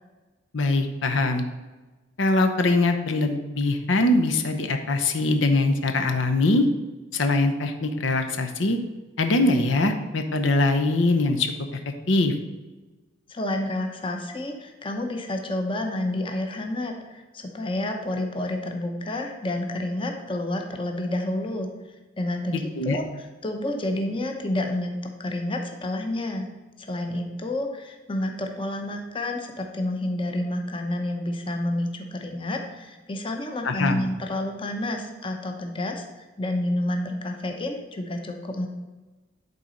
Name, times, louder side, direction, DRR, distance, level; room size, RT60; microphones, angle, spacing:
voice 1, 0.5-1.5 2.2-6.7 7.1-8.8 9.2-11.5 12.1-12.3 22.7-23.0 33.6-34.0, left 2 dB, 80° left, 6 dB, 0.8 m, -22 dB
voice 2, 13.3-26.5 26.8-38.7, left 1 dB, 25° left, 4 dB, 0.8 m, -29 dB
10.5 x 4.1 x 5.1 m, 1.2 s
head